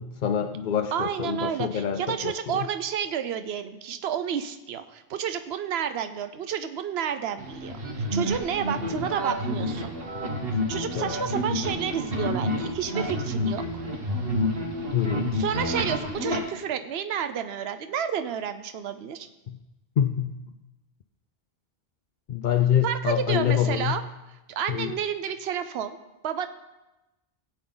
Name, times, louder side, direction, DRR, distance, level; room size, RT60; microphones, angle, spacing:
voice 1, 0.0-2.6 9.0-9.1 11.0-11.1 14.9-15.4 19.5-19.6 20.0-20.4 22.3-24.0 24.7-24.9, left 9 dB, 60° left, 6 dB, 0.6 m, -26 dB
voice 2, 0.9-9.9 10.7-13.8 15.3-19.3 22.8-24.0 24.5-26.0 26.2-26.5, right 8 dB, 80° right, 9 dB, 0.9 m, -30 dB
sound 1, 7.4-16.4, left 1 dB, 65° right, 1.6 m, -29 dB
17.0 x 8.7 x 3.9 m, 1.0 s
omnidirectional pair, 1.0 m